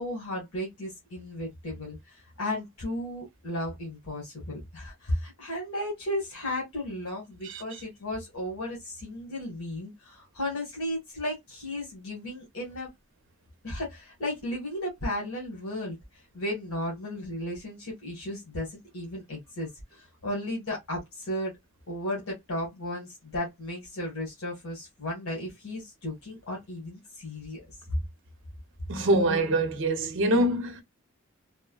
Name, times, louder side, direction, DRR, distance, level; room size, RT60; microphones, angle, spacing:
voice 1, 0.0-12.9 13.6-16.0 16.3-21.5 21.9-27.6, left 1 dB, 90° left, 1.3 m, -34 dB
voice 2, 28.9-30.8, right 1 dB, 60° right, 0.7 m, -24 dB
3.2 x 2.1 x 2.2 m
head